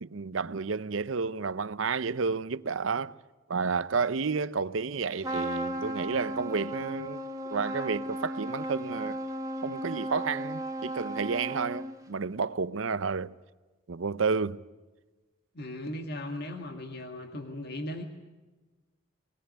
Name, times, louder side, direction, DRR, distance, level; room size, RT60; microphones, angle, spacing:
voice 1, 0.0-3.2 3.5-7.2 7.5-9.2 9.6-13.3 13.9-14.6, right 5 dB, 75° right, 0.7 m, -31 dB
Trumpet, 5.2-12.1, right 1 dB, 20° right, 1.9 m, -35 dB
voice 2, 15.6-18.0, left 1 dB, 55° left, 1.9 m, -37 dB
22.0 x 19.5 x 9.6 m
head